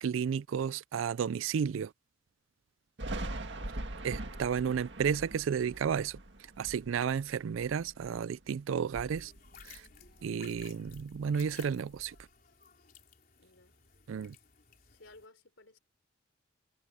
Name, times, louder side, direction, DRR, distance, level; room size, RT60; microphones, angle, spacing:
voice 1, 0.0-1.9 4.0-6.2 6.6-9.3 9.6-9.8 10.2-12.1 14.1-14.3, right 7 dB, 85° right, 0.4 m, -32 dB
Thunder, 3.0-8.4 8.8-10.2 10.5-12.2, right 1 dB, 60° right, 2.0 m, -43 dB
voice 2, 4.2-4.7 13.4-13.8 14.9-15.8, left 2 dB, 75° left, 3.8 m, -58 dB
sound 1, 9.1-15.3, left 8 dB, 45° left, 3.8 m, -57 dB
head